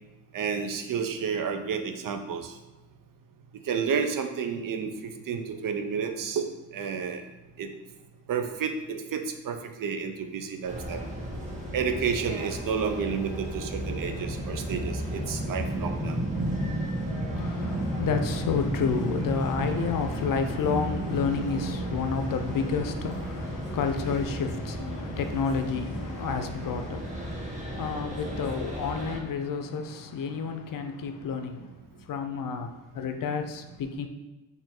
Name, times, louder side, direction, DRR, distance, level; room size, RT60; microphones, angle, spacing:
voice 1, 0.3-2.5 3.7-6.4 6.7-7.2 7.6-7.7 8.3-11.0 11.7-16.2, right 6 dB, 60° right, 6 dB, 0.6 m, -30 dB
sound 1, 10.7-29.2, right 1 dB, 20° right, 1.4 m, -33 dB
voice 2, 17.4-31.7 32.1-34.1, left 5 dB, 60° left, 7 dB, 0.6 m, -30 dB
4.3 x 2.8 x 4.3 m, 1.1 s
supercardioid pair, 50°, 37 cm